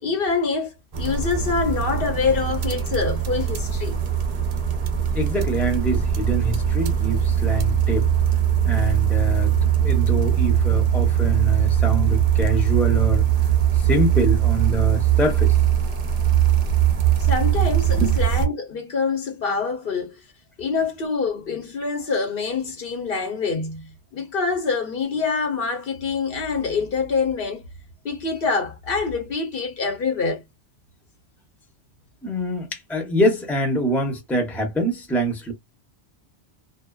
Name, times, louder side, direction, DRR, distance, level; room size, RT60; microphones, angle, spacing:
voice 1, 0.0-4.0 17.2-20.1 20.6-27.6 28.0-30.4, left 4 dB, 60° left, 0.8 m, -25 dB
sound 1, 0.9-18.5, right 9 dB, 50° right, 0.5 m, -21 dB
voice 2, 5.1-8.1 8.6-13.2 13.7-15.6 17.9-18.2 32.2-35.5, equal, ahead, 0.6 m, -25 dB
2.5 x 2.1 x 2.3 m
omnidirectional pair, 1.1 m